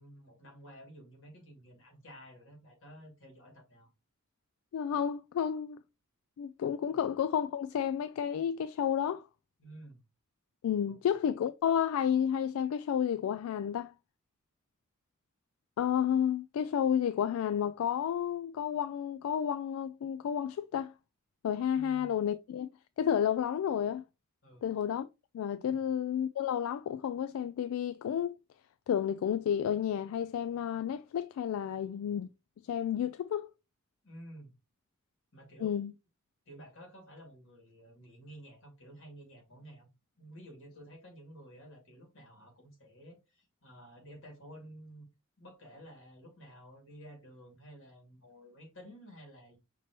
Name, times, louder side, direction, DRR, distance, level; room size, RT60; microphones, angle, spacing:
voice 1, 0.0-3.9 6.9-7.0 9.6-10.0 10.9-11.0 21.7-22.1 24.4-24.7 25.7-25.9 31.7-31.8 34.0-34.5 35.3-35.7 36.5-39.9 40.2-45.1 45.4-49.6, equal, 65° left, 2.4 m, -52 dB
voice 2, 4.7-5.8 6.4-9.2 10.6-13.9 15.8-20.9 21.4-22.7 23.0-24.0 24.6-25.1 25.3-28.3 28.9-32.3 32.7-33.5 35.6-35.9, left 9 dB, 85° left, 0.3 m, -31 dB
5.9 x 3.0 x 3.0 m
head